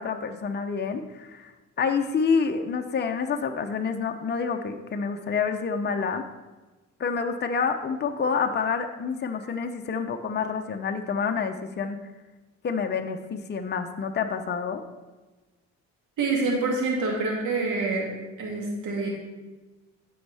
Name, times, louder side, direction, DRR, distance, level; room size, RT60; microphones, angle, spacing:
voice 1, 0.0-1.5 1.8-6.2 7.0-12.0 12.6-14.8, left 5 dB, 35° left, 5 dB, 0.8 m, -28 dB
voice 2, 16.2-18.1 18.4-19.1, right 3 dB, 85° right, -1 dB, 2.5 m, -26 dB
14.5 x 5.4 x 3.5 m, 1.2 s
cardioid pair, 90°, 30 cm